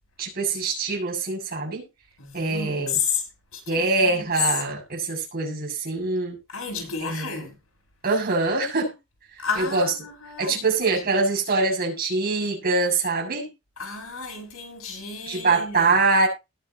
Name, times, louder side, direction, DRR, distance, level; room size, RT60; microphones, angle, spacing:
voice 1, 0.2-1.8 2.3-3.0 3.7-6.4 7.0-7.4 8.0-8.9 9.6-9.9 10.4-13.5 15.3-16.3, right 3 dB, 45° right, 7.0 m, -24 dB
voice 2, 2.2-3.2 3.5-4.2 6.5-7.5 9.4-9.9 10.2-10.6 11.1-11.2 13.8-15.9, left 5 dB, 80° left, 5.8 m, -31 dB
19.5 x 7.5 x 2.9 m
head